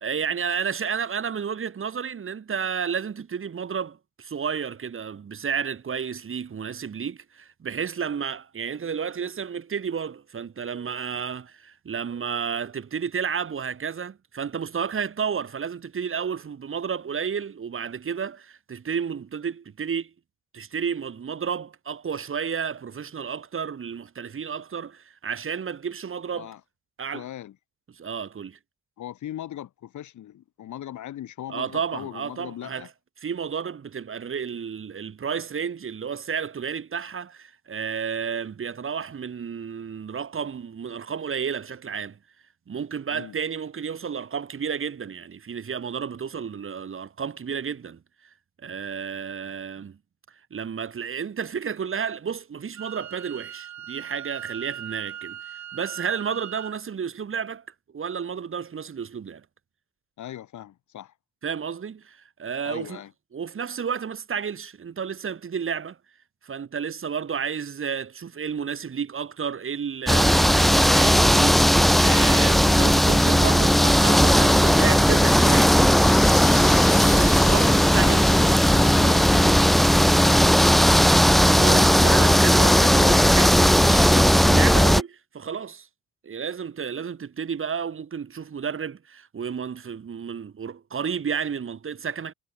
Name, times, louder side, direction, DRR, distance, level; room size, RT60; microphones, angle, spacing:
voice 1, 0.0-20.1 20.5-26.5 27.0-27.3 27.9-28.6 31.5-32.9 33.2-42.2 42.7-48.0 48.6-50.0 50.5-57.6 57.9-59.4 61.4-63.0 63.3-66.0 66.4-75.8 77.1-78.4 81.3-85.9 86.2-92.3, right 7 dB, 45° right, 3.4 m, -31 dB
voice 2, 26.3-26.6 27.1-27.6 29.0-32.9 43.1-43.4 60.2-61.1 62.6-63.1 77.8-81.1, left 12 dB, 75° left, 5.0 m, -39 dB
Wind instrument woodwind instrument, 52.8-56.8, right 10 dB, 65° right, 6.2 m, -39 dB
sound 1, 70.1-85.0, equal, ahead, 0.4 m, -17 dB
sound 2, 71.9-79.6, left 5 dB, 25° left, 1.0 m, -38 dB
cardioid pair, 90°, 30 cm